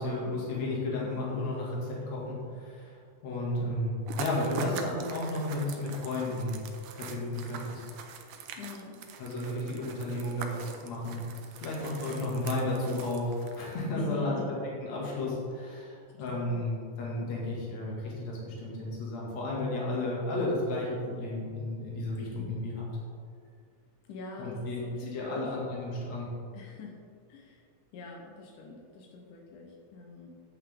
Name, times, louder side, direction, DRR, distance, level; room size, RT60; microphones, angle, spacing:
voice 1, 0.0-6.6 6.9-7.8 9.2-11.2 11.6-14.6 14.8-22.8 24.4-26.3, left 1 dB, 65° left, -4 dB, 3.1 m, -33 dB
sound 1, 4.1-13.8, right 6 dB, 85° right, 2.2 m, -43 dB
voice 2, 8.6-9.0 13.9-14.6 16.1-16.6 24.1-25.5 26.5-27.0 27.3-27.6 27.9-30.3, left 4 dB, 90° left, -1 dB, 2.5 m, -44 dB
9.2 x 8.7 x 3.6 m, 2.2 s
omnidirectional pair, 3.5 m